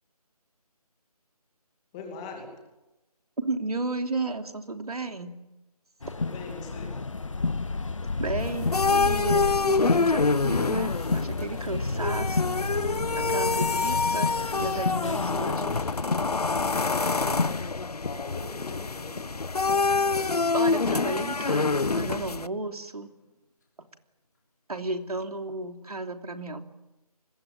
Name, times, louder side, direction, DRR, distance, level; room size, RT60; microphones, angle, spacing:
voice 1, 1.9-2.5 6.2-6.9 16.6-17.5 18.0-19.3, left 4 dB, 10° left, 2 dB, 2.5 m, -41 dB
voice 2, 3.4-5.3 6.1-6.2 8.2-12.6 13.1-14.3 14.6-15.7 20.5-23.1 24.7-26.6, right 3 dB, 70° right, 6 dB, 3.2 m, -33 dB
sound 1, 6.0-17.7, left 3 dB, 55° left, 1.2 m, -31 dB
sound 2, 8.4-22.5, left 4 dB, 75° left, 1.1 m, -26 dB
sound 3, 11.5-13.7 14.2-14.3 15.1-15.2 15.6-15.9 16.6-16.7 18.0-18.8 19.8-20.0, equal, 30° left, 3.3 m, -38 dB
27.5 x 21.5 x 8.7 m, 1.0 s
figure-of-eight pair, 175°, 20 cm